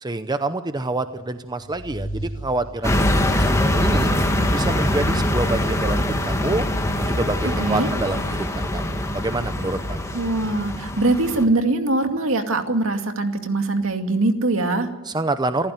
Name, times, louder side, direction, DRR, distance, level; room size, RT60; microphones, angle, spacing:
voice 1, 0.0-4.1 4.5-6.6 7.0-10.1 15.0-15.7, right 2 dB, 20° right, 10 dB, 0.7 m, -27 dB
sound 1, 1.0-3.4, right 1 dB, 85° left, 2.8 m, -35 dB
sound 2, 2.8-11.4, left 1 dB, 15° left, 2.1 m, -23 dB
voice 2, 7.6-7.9 10.1-14.9, right 2 dB, 65° right, 6 dB, 2.3 m, -22 dB
28.0 x 14.5 x 9.3 m, 1.1 s
head